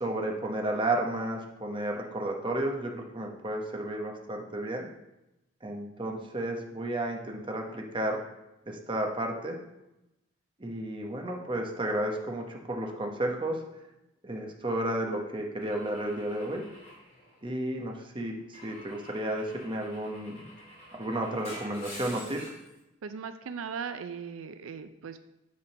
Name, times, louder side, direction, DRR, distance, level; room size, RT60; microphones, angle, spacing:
voice 1, 0.0-4.9 5.6-8.2 8.7-9.6 10.6-13.6 14.2-16.6 17.4-20.4 20.9-22.4, right 1 dB, 25° right, 1 dB, 0.9 m, -32 dB
Car / Engine / Glass, 15.6-17.8 18.5-22.7, equal, 35° left, 2.8 m, -48 dB
voice 2, 23.0-25.2, right 6 dB, 80° right, 10 dB, 0.4 m, -38 dB
8.7 x 3.7 x 5.8 m, 0.92 s
head